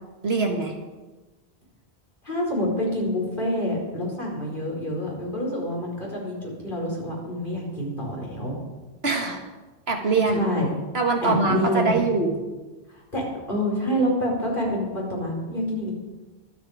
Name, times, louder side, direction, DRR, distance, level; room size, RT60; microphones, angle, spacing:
voice 1, 0.2-0.7 9.0-9.4 9.9-10.4 10.9-12.4, right 4 dB, 80° right, 3 dB, 2.2 m, -23 dB
voice 2, 2.2-8.6 10.3-10.7 11.2-12.0 12.9-15.9, equal, 55° left, -3 dB, 5.2 m, -27 dB
24.0 x 8.5 x 5.1 m, 1.2 s
omnidirectional pair, 1.1 m